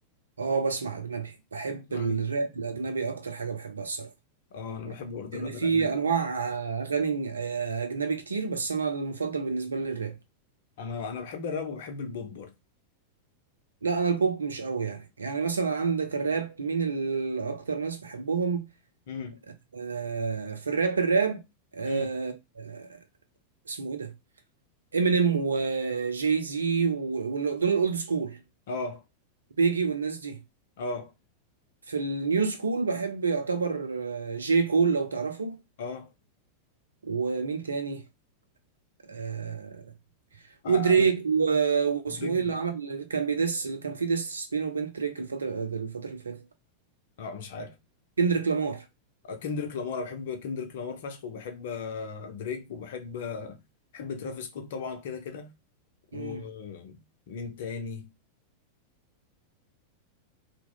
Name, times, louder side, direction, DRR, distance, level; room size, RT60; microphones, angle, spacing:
voice 1, 0.4-4.1 5.3-10.1 13.8-18.7 19.7-21.4 21.7-23.0 23.7-24.1 24.9-28.4 29.6-30.4 31.9-35.6 37.0-38.0 39.1-39.8 40.7-46.4 48.2-48.8 56.1-56.4, right 5 dB, 75° right, 0.6 m, -28 dB
voice 2, 1.9-2.3 4.5-5.9 10.8-12.5 19.1-19.4 21.8-22.1 28.7-29.0 30.8-31.1 35.8-36.1 40.6-41.1 42.2-42.5 47.2-47.8 49.2-53.6 53.9-55.5 56.1-57.0 57.3-58.1, left 5 dB, 55° left, 0.7 m, -36 dB
2.9 x 2.1 x 3.7 m
figure-of-eight pair, 90°, 0 cm